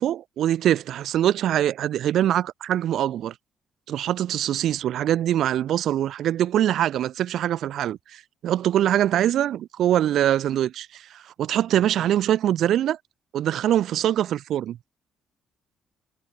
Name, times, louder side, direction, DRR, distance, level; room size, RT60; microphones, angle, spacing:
voice 1, 0.0-3.3 3.9-13.0 13.3-14.9, right 11 dB, 70° right, 0.6 m, -23 dB
cardioid pair, 105°, 0 cm